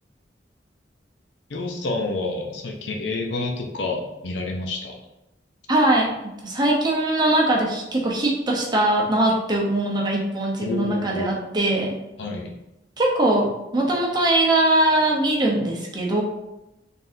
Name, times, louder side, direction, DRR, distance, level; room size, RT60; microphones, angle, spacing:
voice 1, 1.5-4.9 10.6-11.3 12.2-12.5, left 3 dB, 90° left, 2 dB, 0.6 m, -28 dB
voice 2, 5.7-11.9 13.0-16.2, right 1 dB, 25° right, -1 dB, 0.8 m, -21 dB
3.9 x 3.5 x 2.7 m, 0.93 s
head